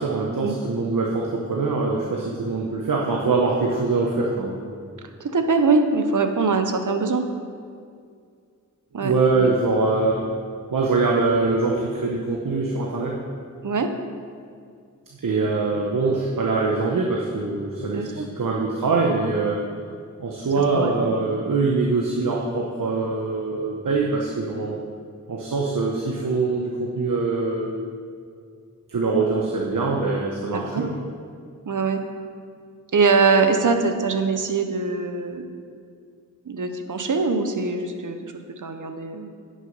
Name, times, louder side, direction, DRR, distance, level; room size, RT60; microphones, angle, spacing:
voice 1, 0.0-4.7 9.0-10.3 10.7-13.2 15.2-19.6 20.2-24.8 25.3-27.7 28.9-30.9, right 3 dB, 90° right, -2 dB, 1.0 m, -23 dB
voice 2, 5.2-7.2 8.9-9.5 13.6-13.9 17.9-18.3 20.6-21.2 30.5-30.8 31.6-32.0 32.9-35.5 36.5-39.3, right 4 dB, 70° right, 7 dB, 0.9 m, -23 dB
9.6 x 6.4 x 5.5 m, 2.2 s
wide cardioid pair, 65°, 32 cm